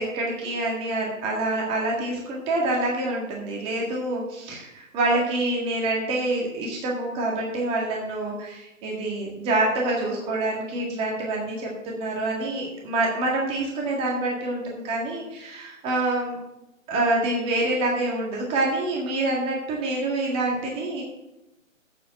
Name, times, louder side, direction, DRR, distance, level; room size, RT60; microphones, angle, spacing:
voice 1, 0.0-16.4 16.9-21.0, right 2 dB, 15° right, -2 dB, 1.8 m, -26 dB
9.2 x 8.5 x 7.5 m, 0.94 s
hypercardioid pair, 150°, 40 cm